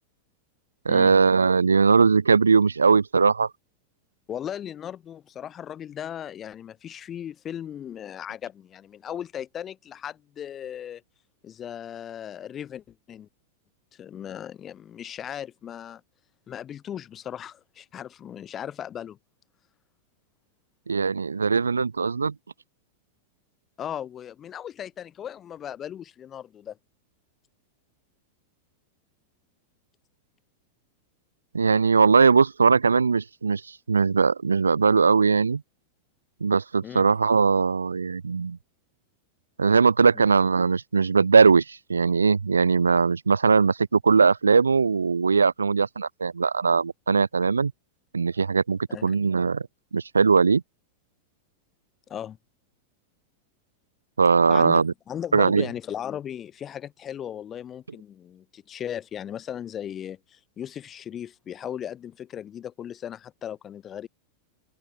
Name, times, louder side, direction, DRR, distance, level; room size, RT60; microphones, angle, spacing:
voice 1, 0.8-3.5 20.9-22.3 31.5-33.6 33.9-35.6 36.4-38.6 39.6-47.7 48.1-49.7 49.9-50.6 54.2-54.9 55.3-55.7, right 5 dB, 75° right, 0.7 m, -20 dB
voice 2, 4.3-11.0 11.4-13.3 13.9-16.0 16.5-19.2 23.8-26.8 36.8-37.1 40.1-40.2 48.9-49.1 52.1-52.4 54.5-64.1, left 9 dB, 25° left, 3.4 m, -37 dB
open air
figure-of-eight pair, 90°, 0 cm